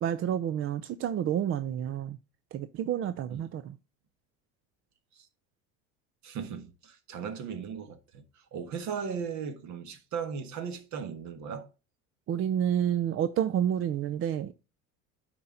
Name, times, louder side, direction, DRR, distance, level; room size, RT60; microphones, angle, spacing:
voice 1, 0.0-2.2 2.5-3.8 12.3-14.5, right 10 dB, 40° right, 0.5 m, -29 dB
voice 2, 6.2-11.7, right 6 dB, 55° right, 1.5 m, -37 dB
9.7 x 4.4 x 3.7 m
supercardioid pair, 115°, 34 cm